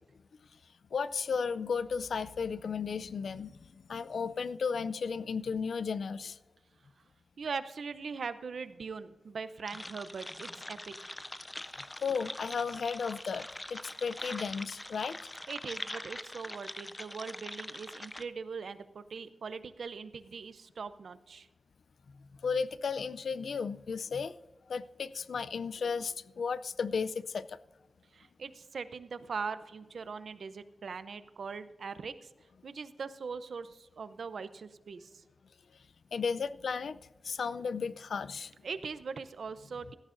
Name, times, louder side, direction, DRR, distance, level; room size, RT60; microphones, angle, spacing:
voice 1, 0.9-6.4 12.0-15.2 22.4-24.4 24.7-27.6 36.1-37.0 37.2-38.5, left 5 dB, 90° left, 16 dB, 0.4 m, -34 dB
voice 2, 7.4-10.9 15.5-21.5 28.1-32.3 32.6-35.2 38.6-39.9, right 5 dB, 80° right, 13 dB, 0.6 m, -41 dB
sound 1, 9.7-18.2, left 1 dB, 15° left, 0.4 m, -43 dB
17.0 x 13.5 x 2.6 m, 1.2 s
wide cardioid pair, 145°, 0 cm